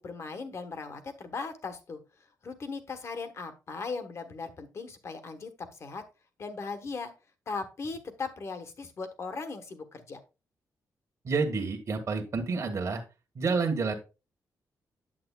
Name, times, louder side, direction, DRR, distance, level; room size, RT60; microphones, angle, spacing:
voice 1, 0.0-2.0 2.4-5.5 5.8-6.0 6.4-7.1 7.5-10.2, left 4 dB, 50° left, 8 dB, 1.2 m, -38 dB
voice 2, 11.2-13.0 13.3-13.9, right 4 dB, 50° right, 4 dB, 1.3 m, -29 dB
8.7 x 7.7 x 2.3 m, 0.29 s
wide cardioid pair, 130°, 6 cm